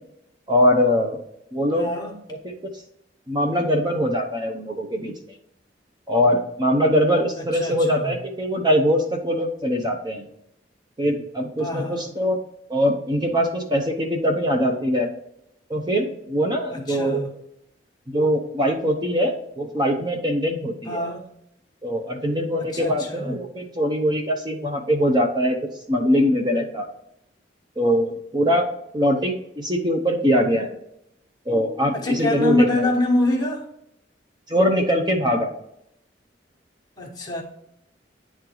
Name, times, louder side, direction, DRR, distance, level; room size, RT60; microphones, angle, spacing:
voice 1, 0.5-1.2 1.5-1.9 2.4-2.6 3.3-5.1 6.1-10.3 11.0-12.4 12.7-15.1 15.7-17.3 18.1-21.1 21.8-26.9 27.8-30.8 31.5-32.9 34.5-35.5, equal, 25° right, 0.7 m, -22 dB
voice 2, 1.7-2.1 7.6-8.1 11.6-12.0 16.7-17.3 20.9-21.2 22.7-23.3 31.9-33.6 37.0-37.4, left 2 dB, 25° left, 1.3 m, -25 dB
10.0 x 3.9 x 2.9 m
head